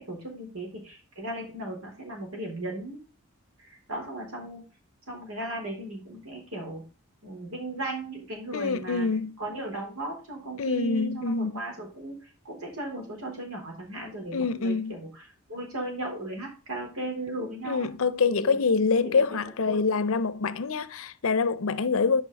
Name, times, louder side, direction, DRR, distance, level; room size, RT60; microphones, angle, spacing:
voice 1, 0.0-3.0 3.6-4.6 5.1-6.8 7.2-9.1 9.4-17.9 18.3-18.6 19.0-19.4 19.7-19.8 21.9-22.0, right 1 dB, 85° right, 4.0 m, -36 dB
voice 2, 8.5-9.4 10.6-11.6 14.3-15.0 17.6-22.2, left 4 dB, 70° left, 0.6 m, -25 dB
9.6 x 5.4 x 4.1 m
head